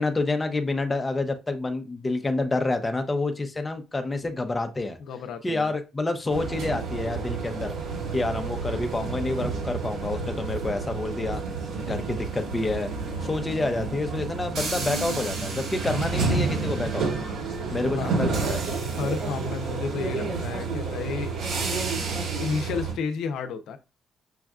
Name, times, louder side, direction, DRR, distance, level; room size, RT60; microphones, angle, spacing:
voice 1, 0.0-5.0 5.4-7.7 8.1-11.4 11.8-12.9 13.2-17.1 17.7-18.6, left 2 dB, 15° left, 0.6 m, -28 dB
voice 2, 5.0-5.7 17.9-18.1 18.9-21.4 22.3-23.8, left 5 dB, 80° left, 0.6 m, -31 dB
sound 1, 6.3-22.9, right 4 dB, 80° right, 1.7 m, -30 dB
6.2 x 2.4 x 2.4 m
cardioid pair, 130°, 0 cm